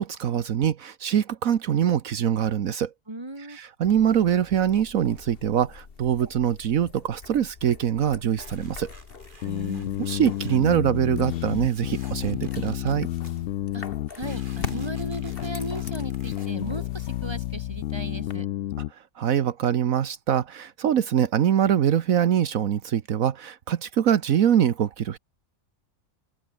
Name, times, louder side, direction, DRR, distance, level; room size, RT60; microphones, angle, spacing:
voice 1, 0.0-2.9 3.4-8.9 10.0-13.1 18.9-25.2, right 9 dB, 75° right, 1.4 m, -23 dB
voice 2, 3.1-3.6 9.4-10.0 13.7-13.8 14.1-18.5, right 2 dB, 20° right, 2.7 m, -36 dB
sound 1, 3.8-18.4, left 5 dB, 45° left, 1.6 m, -44 dB
sound 2, 8.3-13.4 14.1-16.5, right 2 dB, 35° right, 4.2 m, -52 dB
sound 3, 9.4-18.9, left 14 dB, 70° left, 0.9 m, -31 dB
omnidirectional pair, 1.4 m